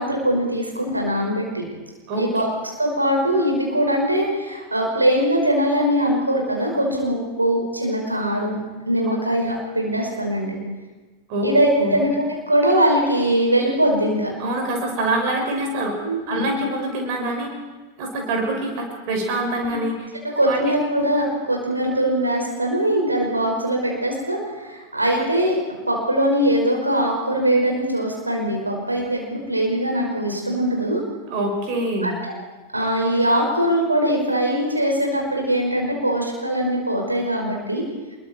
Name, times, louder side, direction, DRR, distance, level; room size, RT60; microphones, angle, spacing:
voice 1, 0.0-1.7 2.2-2.5 2.8-8.6 8.9-10.6 11.4-14.3 16.0-16.4 19.7-19.8 20.4-25.5 25.9-31.0 32.0-32.3 32.7-37.8, right 1 dB, 85° right, 0 dB, 5.6 m, -21 dB
voice 2, 14.4-16.0 16.3-17.5 18.0-20.1 20.5-20.6 31.3-32.1, right 1 dB, 45° right, 2 dB, 6.3 m, -25 dB
27.0 x 22.5 x 4.6 m, 1.2 s
figure-of-eight pair, 90°, 0 cm